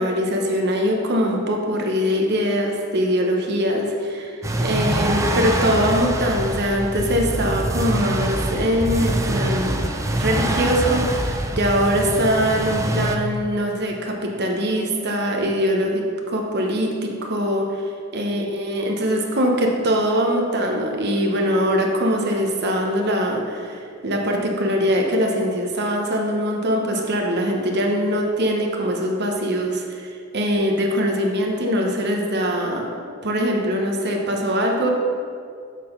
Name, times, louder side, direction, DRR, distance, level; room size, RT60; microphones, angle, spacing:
voice 1, 0.0-9.9 10.2-17.7 18.1-34.9, equal, 55° right, 1 dB, 1.0 m, -22 dB
sound 1, 4.4-13.2, right 1 dB, 15° right, 0.4 m, -24 dB
6.6 x 3.9 x 6.4 m, 2.3 s
head